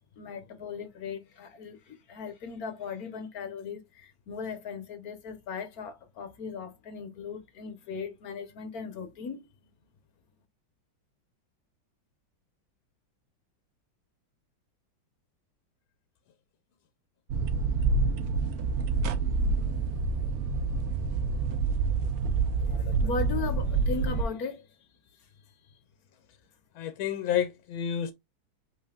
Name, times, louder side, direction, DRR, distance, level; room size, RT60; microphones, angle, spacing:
voice 1, 0.0-9.5 22.6-24.7 25.2-25.3 25.6-25.8, left 5 dB, 55° left, 1.4 m, -38 dB
sound 1, 17.3-24.2, right 4 dB, 70° right, 0.9 m, -27 dB
voice 2, 26.8-28.1, left 9 dB, 90° left, 1.4 m, -29 dB
5.4 x 4.2 x 2.4 m
omnidirectional pair, 2.1 m